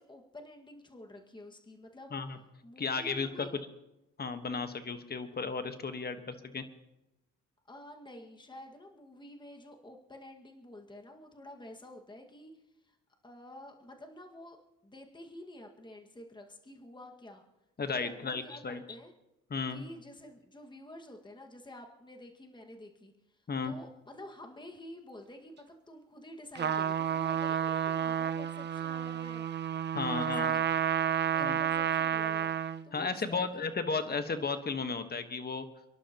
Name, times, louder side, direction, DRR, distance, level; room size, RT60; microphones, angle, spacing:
voice 1, 0.0-2.2 2.6-3.5 7.7-13.0 13.2-14.6 14.8-17.4 17.9-19.1 19.7-29.4 30.0-30.6 31.3-32.5 32.8-33.6, left 1 dB, 15° left, 2 dB, 1.9 m, -50 dB
voice 2, 2.8-3.5 4.2-6.6 17.8-18.8 19.5-19.8 23.5-23.7 29.9-30.5 31.4-31.6 32.9-35.6, left 4 dB, 30° left, 8 dB, 1.4 m, -34 dB
Trumpet, 26.5-32.8, right 9 dB, 35° right, 0.7 m, -31 dB
30.0 x 11.0 x 3.0 m, 0.92 s
cardioid pair, 90°, 30 cm